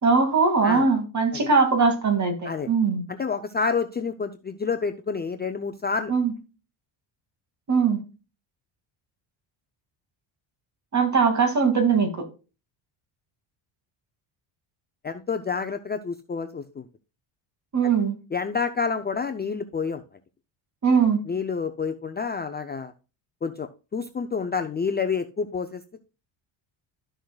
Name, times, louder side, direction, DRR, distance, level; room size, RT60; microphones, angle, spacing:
voice 1, 0.0-3.0 6.1-6.3 7.7-8.0 10.9-12.3 17.7-18.2 20.8-21.2, right 5 dB, 35° right, 2.4 m, -21 dB
voice 2, 3.1-6.1 15.0-16.9 17.8-17.9 18.3-20.0 21.3-22.9 23.4-26.0, left 5 dB, 20° left, 0.5 m, -29 dB
13.0 x 6.3 x 2.3 m
cardioid pair, 115°, 50 cm